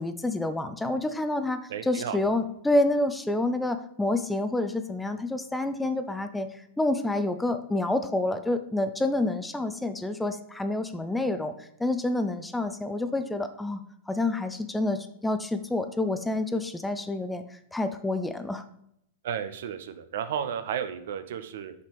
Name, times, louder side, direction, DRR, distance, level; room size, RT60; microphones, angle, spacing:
voice 1, 0.0-6.5 6.8-13.8 14.1-17.4 17.7-18.6, left 2 dB, 5° left, 9 dB, 0.4 m, -28 dB
voice 2, 1.7-2.3 19.2-21.7, right 8 dB, 55° right, 10 dB, 0.5 m, -33 dB
5.8 x 5.7 x 3.3 m, 0.74 s
figure-of-eight pair, 95°, 0 cm